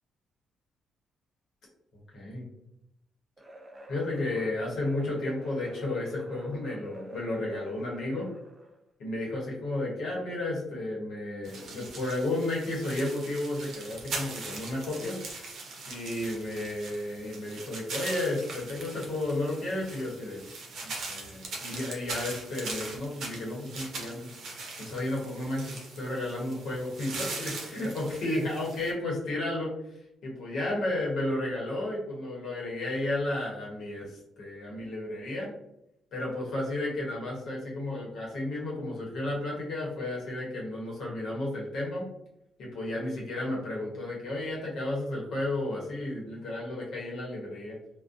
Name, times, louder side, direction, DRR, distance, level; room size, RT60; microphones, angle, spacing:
voice 1, 2.1-2.5 3.9-8.3 9.0-15.2 15.9-20.4 20.8-24.3 24.8-29.7 30.2-35.5 36.1-42.1 42.6-47.8, left 1 dB, 70° left, -3 dB, 0.9 m, -33 dB
sound 1, 3.4-8.8, right 1 dB, 25° right, 0.4 m, -49 dB
sound 2, 11.5-28.9, right 3 dB, 65° right, 0.6 m, -41 dB
2.5 x 2.1 x 2.4 m, 0.82 s
cardioid pair, 90°, 0 cm